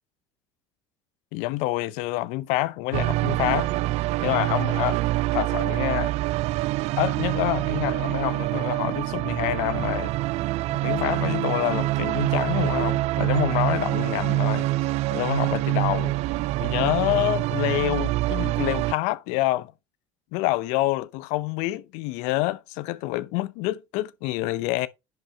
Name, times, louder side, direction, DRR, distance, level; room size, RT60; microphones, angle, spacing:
voice 1, 1.3-3.7 4.2-5.0 5.3-6.1 7.0-10.1 10.8-14.7 15.1-16.1 16.6-19.7 20.3-24.9, left 18 dB, 70° left, 0.7 m, -27 dB
sound 1, 2.9-18.9, right 18 dB, 60° right, 0.4 m, -25 dB
10.5 x 5.0 x 3.3 m
supercardioid pair, 80°, 12 cm